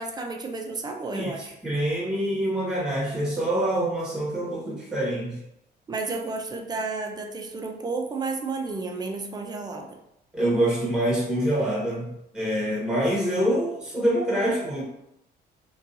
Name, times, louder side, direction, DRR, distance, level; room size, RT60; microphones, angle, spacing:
voice 1, 0.0-1.5 5.9-10.0, right 3 dB, 20° right, 3 dB, 0.4 m, -32 dB
voice 2, 1.6-5.4 10.3-12.1 12.3-14.8, right 1 dB, 5° right, -5 dB, 0.9 m, -25 dB
2.7 x 2.3 x 2.5 m, 0.82 s
cardioid pair, 115°, 19 cm